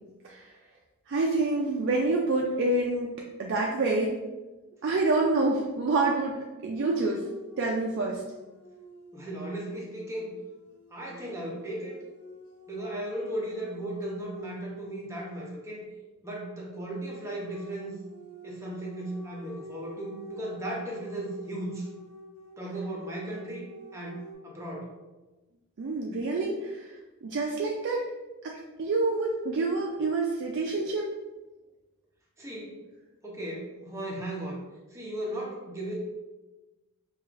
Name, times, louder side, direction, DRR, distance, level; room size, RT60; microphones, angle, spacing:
voice 1, 1.1-3.1 3.4-4.2 4.8-7.2 7.6-8.2 25.8-26.9 27.2-28.1 28.4-31.1, right 2 dB, 55° right, -1 dB, 0.4 m, -27 dB
sound 1, 6.7-15.8 17.0-24.3, left 1 dB, 80° left, 0.7 m, -48 dB
voice 2, 9.1-10.3 10.9-12.0 12.7-15.8 16.2-17.9 18.4-21.9 22.6-24.9 32.4-32.8 33.2-34.6 34.9-36.0, right 1 dB, 15° right, -3 dB, 0.6 m, -36 dB
4.8 x 2.4 x 2.4 m, 1.1 s
head